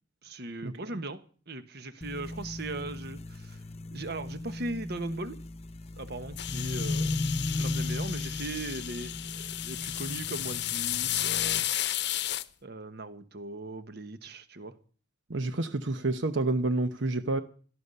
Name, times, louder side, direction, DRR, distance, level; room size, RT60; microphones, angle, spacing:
voice 1, 0.2-1.2 1.5-3.6 3.9-5.4 6.0-7.2 7.6-11.7 12.6-14.7, right 2 dB, 60° right, 1.3 m, -39 dB
sound 1, 2.0-11.6, left 2 dB, 35° left, 0.9 m, -36 dB
sound 2, 6.4-12.4, left 13 dB, 65° left, 0.8 m, -33 dB
voice 2, 15.3-17.4, right 2 dB, 80° right, 0.9 m, -28 dB
18.0 x 13.0 x 5.5 m
head